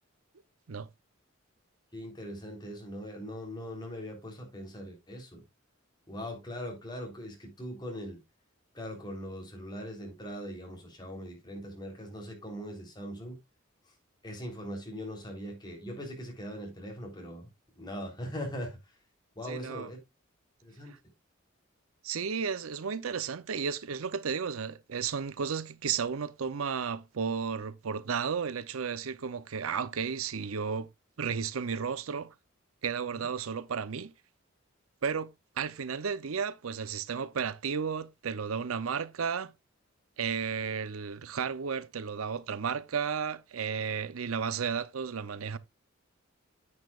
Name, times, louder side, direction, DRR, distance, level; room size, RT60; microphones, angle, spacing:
voice 1, 1.9-5.4 6.1-8.2 8.7-13.4 14.2-17.5 17.7-18.8 19.3-20.0 20.6-20.9 33.1-33.2, equal, 20° left, 3.4 m, -40 dB
voice 2, 19.4-19.9 22.0-30.9 31.2-32.3 32.8-34.1 35.0-35.3 35.6-39.5 40.2-45.6, right 6 dB, 90° right, 0.6 m, -33 dB
9.6 x 8.7 x 2.4 m
head